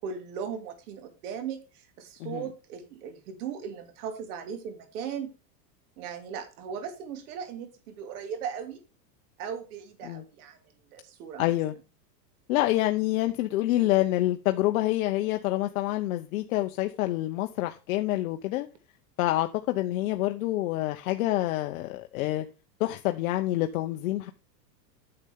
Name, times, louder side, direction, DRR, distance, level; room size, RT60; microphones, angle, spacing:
voice 1, 0.0-5.3 6.0-8.8 9.4-10.6 10.9-11.4 13.8-13.9, right 7 dB, 60° right, 2.6 m, -38 dB
voice 2, 11.4-11.7 12.5-18.7 19.2-22.5 22.8-24.3, left 16 dB, 55° left, 0.8 m, -27 dB
9.7 x 6.9 x 3.5 m
supercardioid pair, 150°, 50 cm